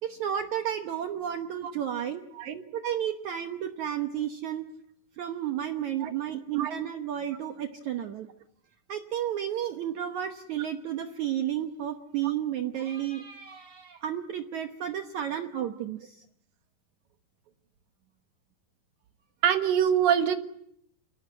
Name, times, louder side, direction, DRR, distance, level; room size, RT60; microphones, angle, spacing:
voice 1, 0.0-2.2 2.7-4.7 5.2-8.3 8.9-16.2, right 10 dB, 85° right, 6 dB, 1.6 m, -32 dB
voice 2, 19.4-20.3, right 8 dB, 60° right, 8 dB, 2.7 m, -24 dB
29.0 x 18.5 x 9.8 m, 0.73 s
omnidirectional pair, 5.1 m